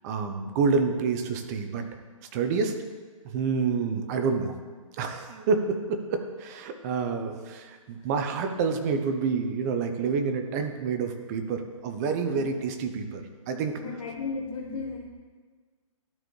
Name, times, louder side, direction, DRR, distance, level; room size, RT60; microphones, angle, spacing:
voice 1, 0.0-1.9 2.3-2.7 3.2-4.5 5.0-13.7, right 5 dB, 30° right, 6 dB, 0.7 m, -28 dB
voice 2, 13.8-15.0, left 4 dB, 75° left, -6 dB, 1.8 m, -35 dB
12.0 x 4.1 x 3.2 m, 1.5 s
hypercardioid pair, 145°, 18 cm